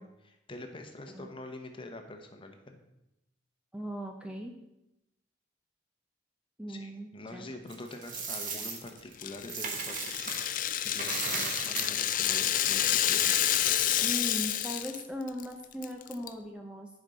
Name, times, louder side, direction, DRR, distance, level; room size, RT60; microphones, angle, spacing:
voice 1, 0.0-2.8 6.7-13.4, left 2 dB, 30° left, 5 dB, 0.9 m, -45 dB
voice 2, 3.7-4.6 6.6-7.5 14.0-16.9, equal, 5° right, 2 dB, 0.6 m, -38 dB
Coin (dropping), 7.7-10.5 10.9-13.1, right 4 dB, 45° right, 1.2 m, -37 dB
Rattle (instrument), 9.2-15.0 15.3-15.4 15.8-16.3, left 11 dB, 45° left, 0.4 m, -29 dB
10.5 x 5.2 x 4.0 m, 0.89 s
head